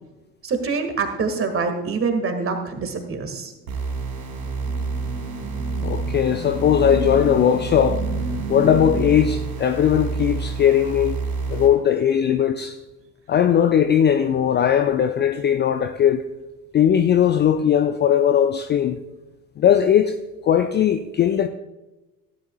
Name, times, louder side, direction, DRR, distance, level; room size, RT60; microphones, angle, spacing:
voice 1, 0.4-3.5, right 4 dB, 30° right, 1.9 m, -25 dB
sound 1, 3.7-11.7, right 4 dB, 70° right, 3.0 m, -28 dB
sound 2, 3.8-9.1, equal, 50° right, 1.7 m, -32 dB
voice 2, 5.8-8.0 8.5-11.2 11.5-12.8 13.3-16.2 16.7-19.0 19.6-20.2 20.4-21.5, left 9 dB, 25° left, 0.5 m, -19 dB
16.5 x 10.5 x 2.3 m
figure-of-eight pair, 55°, 45 cm